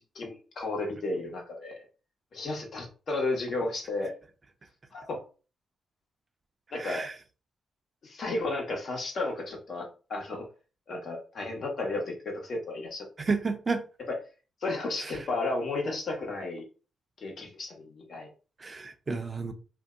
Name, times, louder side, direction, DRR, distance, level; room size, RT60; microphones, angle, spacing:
voice 1, 0.0-1.8 2.3-4.2 4.9-5.2 6.7-7.0 8.0-10.5 10.9-13.0 14.1-14.2 14.6-16.6 17.2-18.3, left 2 dB, 60° left, 1.1 m, -33 dB
voice 2, 6.8-7.1 13.2-13.8 15.0-15.1 18.6-19.5, right 4 dB, 40° right, 0.6 m, -31 dB
2.7 x 2.1 x 3.6 m
supercardioid pair, 50°, 0 cm